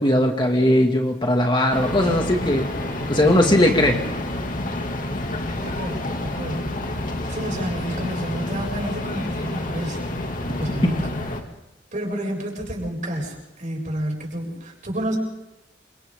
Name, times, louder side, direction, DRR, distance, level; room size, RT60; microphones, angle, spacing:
voice 1, 0.0-2.7 3.1-4.0, left 1 dB, 25° left, 2 dB, 2.4 m, -19 dB
sound 1, 1.7-11.4, left 1 dB, 50° left, 2.6 m, -29 dB
voice 2, 3.1-3.5 5.6-6.7 7.3-10.0 10.6-11.0 11.9-15.2, right 1 dB, 45° right, 0 dB, 7.7 m, -30 dB
28.5 x 26.5 x 3.9 m, 0.92 s
head